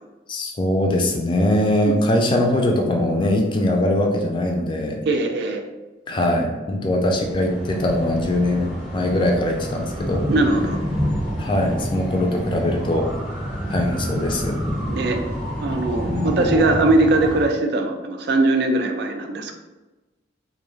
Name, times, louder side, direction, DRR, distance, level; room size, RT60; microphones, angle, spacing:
voice 1, 0.3-5.0 6.1-10.3 11.4-13.1 13.7-14.6 16.0-16.6, left 1 dB, 25° left, 1 dB, 0.3 m, -22 dB
voice 2, 5.1-5.6 10.3-10.8 14.9-15.2 15.6-19.5, right 2 dB, 60° right, 4 dB, 0.3 m, -20 dB
sound 1, 7.1-17.5, equal, 15° right, 0.8 m, -28 dB
2.3 x 2.2 x 3.1 m, 1.1 s
head